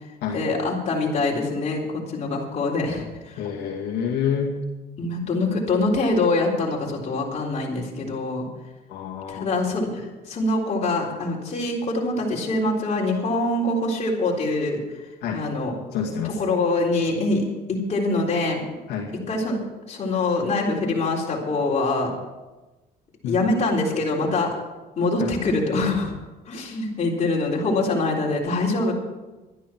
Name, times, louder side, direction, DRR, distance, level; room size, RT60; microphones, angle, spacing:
voice 1, 0.3-3.4 5.0-8.5 9.3-14.8 15.3-15.8 16.2-18.6 19.3-19.6 19.9-22.1 23.2-24.5 25.0-26.1 26.5-28.9, left 2 dB, 40° left, -2 dB, 3.9 m, -24 dB
voice 2, 3.4-4.6 8.9-9.5 15.2-15.4 15.9-16.4 18.9-19.1 23.2-23.6 25.2-25.3, left 7 dB, 85° left, -1 dB, 2.2 m, -28 dB
12.5 x 11.0 x 6.0 m, 1.1 s
cardioid pair, 110°, 17 cm